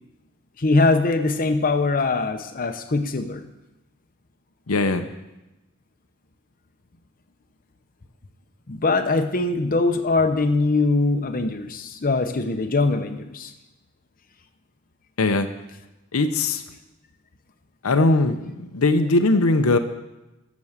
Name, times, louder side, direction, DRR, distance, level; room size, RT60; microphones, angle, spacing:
voice 1, 0.6-3.5 8.7-13.5, left 3 dB, 40° left, 6 dB, 0.9 m, -22 dB
voice 2, 4.7-5.1 15.2-15.5 16.1-16.6 17.8-19.8, left 2 dB, 85° left, 7 dB, 0.9 m, -20 dB
14.5 x 6.3 x 7.3 m, 1.0 s
head